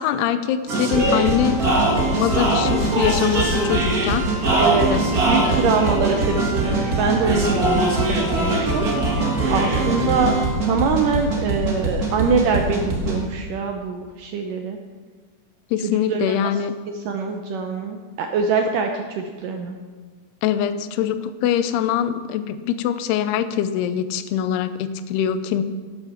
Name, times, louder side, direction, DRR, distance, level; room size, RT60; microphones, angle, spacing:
voice 1, 0.0-1.6 2.2-4.3 4.9-5.0 5.3-5.7 15.7-16.7 20.4-25.6, left 9 dB, 85° left, 12 dB, 2.7 m, -23 dB
sound 1, 0.7-13.2, right 2 dB, 50° right, 1.1 m, -21 dB
voice 2, 4.5-7.9 8.4-8.9 9.5-10.3 10.6-14.8 16.1-16.3 17.1-18.9 19.2-19.8, right 5 dB, 80° right, 4 dB, 1.9 m, -23 dB
12.5 x 8.9 x 5.8 m, 1.5 s
omnidirectional pair, 4.6 m